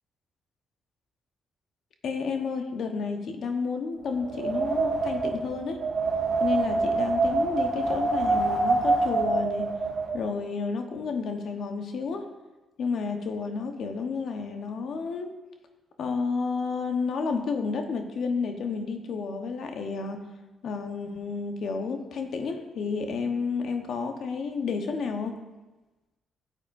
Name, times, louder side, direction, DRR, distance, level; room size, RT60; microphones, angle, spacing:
voice 1, 2.0-5.8 6.4-9.7 10.1-12.3 12.8-15.4 16.0-20.2 20.6-25.4, left 4 dB, 70° left, 5 dB, 1.0 m, -31 dB
Wind, 4.2-10.2, right 3 dB, 55° right, 2.6 m, -26 dB
13.5 x 8.1 x 2.6 m, 1.1 s
cardioid pair, 70°, 0 cm